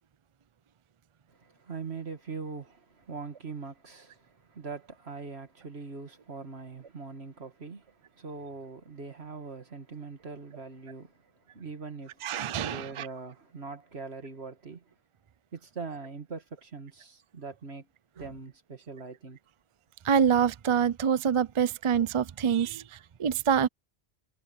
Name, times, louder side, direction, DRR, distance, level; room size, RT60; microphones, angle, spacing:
voice 1, 1.3-14.9 15.5-17.9 18.2-19.4, right 4 dB, 70° right, 2.3 m, -42 dB
voice 2, 12.2-13.1 20.0-23.7, right 7 dB, 40° right, 0.4 m, -26 dB
omnidirectional pair, 1.1 m